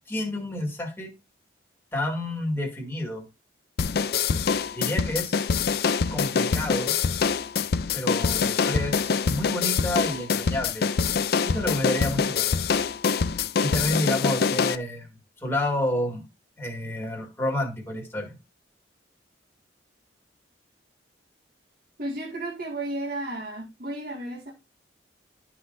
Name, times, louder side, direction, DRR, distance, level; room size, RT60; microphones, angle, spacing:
voice 1, 0.1-1.1 1.9-3.2 4.7-5.5 6.1-7.0 7.9-10.9 11.4-12.6 13.6-15.1 15.4-16.2 16.6-18.4, left 1 dB, 15° left, 2.1 m, -29 dB
sound 1, 3.8-14.8, left 5 dB, 55° left, 0.4 m, -25 dB
voice 2, 22.0-24.5, right 1 dB, 50° right, 1.9 m, -33 dB
12.0 x 5.8 x 2.6 m
head